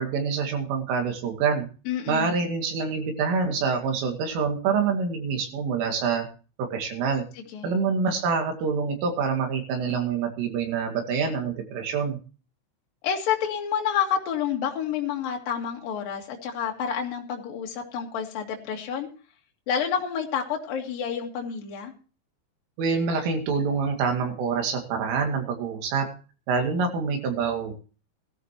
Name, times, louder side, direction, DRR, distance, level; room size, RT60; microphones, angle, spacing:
voice 1, 0.0-1.7 2.1-6.3 6.6-7.2 7.6-12.2 22.8-26.1 26.5-27.7, right 5 dB, 80° right, 3 dB, 4.8 m, -26 dB
voice 2, 1.9-2.3 7.5-7.7 13.0-19.1 19.7-21.9, left 8 dB, 55° left, 1 dB, 3.2 m, -29 dB
17.5 x 13.5 x 3.0 m, 0.36 s
omnidirectional pair, 5.6 m